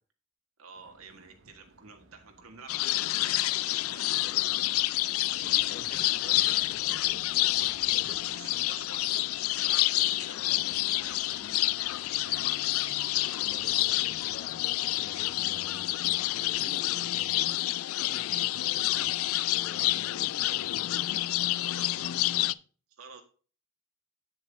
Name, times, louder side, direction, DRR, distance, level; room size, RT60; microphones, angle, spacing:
voice 1, 0.6-4.4 4.7-6.8 7.2-14.1 21.5-22.3 22.9-23.2, right 4 dB, 85° right, 1.6 m, -51 dB
sound 1, 0.7-16.3, right 2 dB, 65° right, 1.0 m, -59 dB
sound 2, 2.7-22.5, left 17 dB, 75° left, 0.3 m, -28 dB
voice 2, 5.5-7.2 7.9-8.2 13.4-19.2 19.5-21.2 21.9-22.6, left 3 dB, 50° left, 0.9 m, -49 dB
7.8 x 7.3 x 3.5 m
head